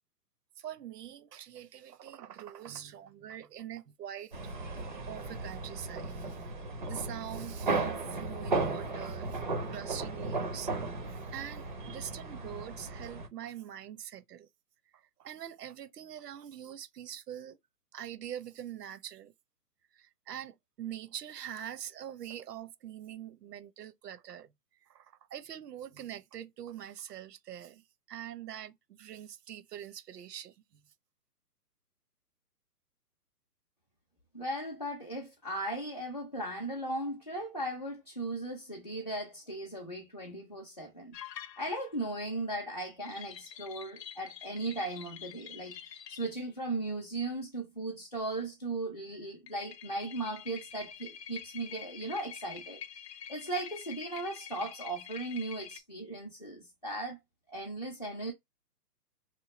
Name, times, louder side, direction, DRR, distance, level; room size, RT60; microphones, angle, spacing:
voice 1, 0.6-4.3 5.0-6.5 6.8-10.7 11.0-14.5 14.9-17.6 17.9-19.3 19.9-24.5 24.9-30.8, right 10 dB, 75° right, 0.7 m, -44 dB
sound 1, 4.3-13.3, right 3 dB, 35° right, 0.4 m, -36 dB
voice 2, 34.3-41.1 41.6-53.0 53.3-57.2 57.5-58.3, right 2 dB, 30° left, 0.4 m, -37 dB
sound 2, 41.1-42.0 43.1-46.4 49.5-55.8, left 8 dB, 85° left, 0.7 m, -47 dB
3.0 x 2.3 x 4.0 m
hypercardioid pair, 155°, 48 cm